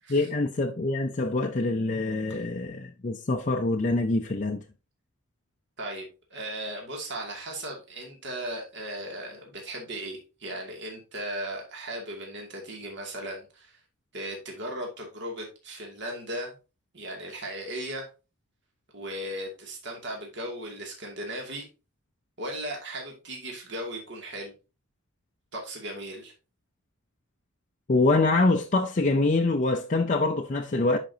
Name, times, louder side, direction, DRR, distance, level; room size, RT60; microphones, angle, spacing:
voice 1, 0.1-4.6 27.9-31.0, left 2 dB, 35° left, 0.5 m, -25 dB
voice 2, 5.8-13.7 14.1-16.5 16.9-18.1 18.9-21.7 22.4-24.5 25.5-26.3, right 1 dB, 55° right, 2.4 m, -37 dB
10.5 x 5.1 x 2.8 m
head